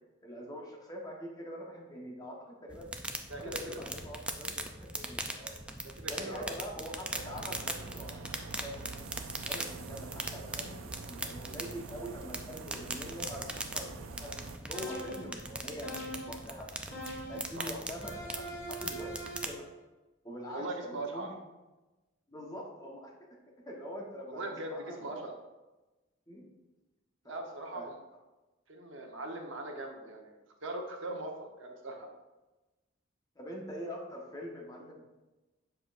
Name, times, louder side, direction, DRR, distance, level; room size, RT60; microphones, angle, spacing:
voice 1, 0.2-2.9 3.4-5.6 6.1-8.9 9.5-14.4 14.6-16.7 17.3-19.7 20.2-21.4 22.3-25.2 26.3-26.5 27.2-27.3 27.7-27.9 33.3-35.0, equal, 20° left, -1 dB, 1.1 m, -44 dB
sound 1, 2.7-19.5, right 1 dB, 5° right, 0.4 m, -41 dB
voice 2, 3.3-3.8 5.8-6.5 17.6-17.7 20.5-21.3 24.3-25.3 27.3-27.9 28.7-31.3 31.6-32.1, right 2 dB, 70° right, 2 dB, 1.0 m, -40 dB
sound 2, 7.1-14.6, right 4 dB, 85° right, 0.5 m, -46 dB
sound 3, 14.7-15.4 15.8-16.5 16.9-17.6 18.0-19.6, right 1 dB, 85° left, 2.2 m, -42 dB
7.5 x 6.1 x 2.5 m, 1.1 s
head